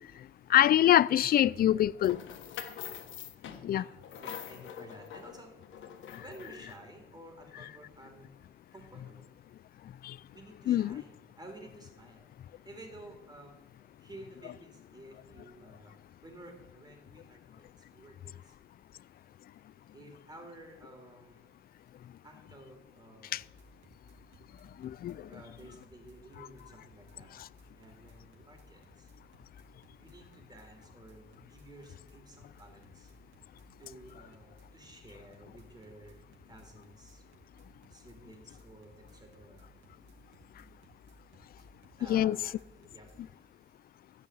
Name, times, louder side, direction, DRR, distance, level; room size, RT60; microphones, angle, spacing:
voice 1, 0.5-2.2 3.6-3.8 10.0-10.1 10.7-11.0 24.8-25.2 42.1-42.4, left 12 dB, 50° left, 0.4 m, -24 dB
sound 1, 2.0-6.7, left 9 dB, 75° left, 1.3 m, -45 dB
voice 2, 3.0-8.4 8.7-9.3 10.3-16.0 16.2-18.5 19.9-21.5 22.2-23.4 25.3-27.3 27.8-29.1 30.0-33.1 33.8-37.3 37.9-41.0 41.6-43.8, right 1 dB, 20° right, 3.9 m, -53 dB
sound 2, 23.3-43.2, equal, 75° right, 2.6 m, -59 dB
14.0 x 5.6 x 9.3 m
cardioid pair, 90°, 20 cm